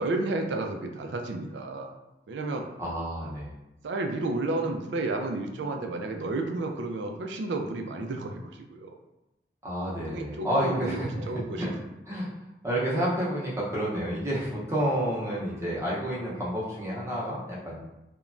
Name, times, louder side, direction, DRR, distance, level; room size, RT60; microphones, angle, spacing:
voice 1, 0.0-1.9 2.3-2.7 3.8-8.9 10.1-11.7, right 2 dB, 80° right, 4 dB, 0.4 m, -32 dB
voice 2, 2.8-3.5 9.6-11.7 12.1-12.3 12.6-17.8, equal, 15° right, -6 dB, 0.6 m, -30 dB
3.0 x 2.2 x 2.5 m, 0.92 s
head